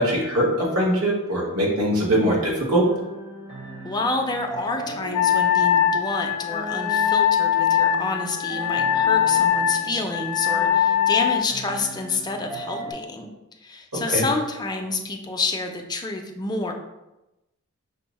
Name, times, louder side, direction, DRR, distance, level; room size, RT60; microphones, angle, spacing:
voice 1, 0.0-2.9 13.9-14.2, equal, 70° right, -3 dB, 1.3 m, -22 dB
sound 1, 2.8-12.9, right 1 dB, 30° right, 0.8 m, -37 dB
voice 2, 3.8-13.3 13.6-16.7, left 3 dB, 20° left, 3 dB, 0.4 m, -28 dB
Wind instrument woodwind instrument, 5.1-11.5, left 9 dB, 85° left, 0.4 m, -21 dB
5.3 x 2.1 x 4.0 m, 0.96 s
head